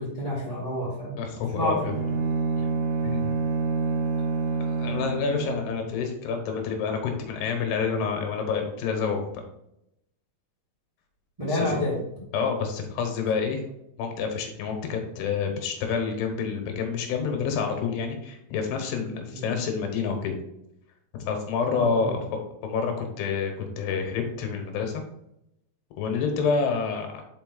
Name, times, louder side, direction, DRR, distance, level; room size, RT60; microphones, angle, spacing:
voice 1, 0.0-1.2 1.5-1.9 11.4-12.0 21.7-22.1, left 1 dB, 20° right, -8 dB, 1.0 m, -28 dB
voice 2, 1.2-1.9 2.6-2.7 3.0-3.3 4.7-9.4 11.5-11.8 12.3-13.6 14.0-20.4 21.2-25.0 26.0-27.2, left 5 dB, 90° left, 4 dB, 3.2 m, -28 dB
Bowed string instrument, 1.8-5.9, right 4 dB, 60° right, 2.4 m, -27 dB
5.7 x 5.2 x 3.8 m, 0.82 s
omnidirectional pair, 4.6 m